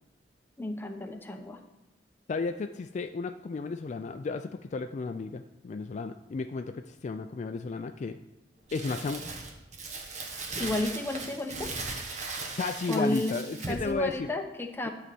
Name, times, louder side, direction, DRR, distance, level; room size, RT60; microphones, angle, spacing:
voice 1, 0.6-1.6 10.6-11.7 12.9-13.4 13.7-14.9, left 1 dB, 10° left, 4 dB, 0.8 m, -32 dB
voice 2, 2.3-8.2 8.7-9.2 12.6-14.3, left 4 dB, 40° left, 8 dB, 0.3 m, -33 dB
Crumpling crinkling, 8.7-13.9, right 3 dB, 45° right, 1.3 m, -38 dB
11.5 x 4.1 x 7.6 m, 1.0 s
head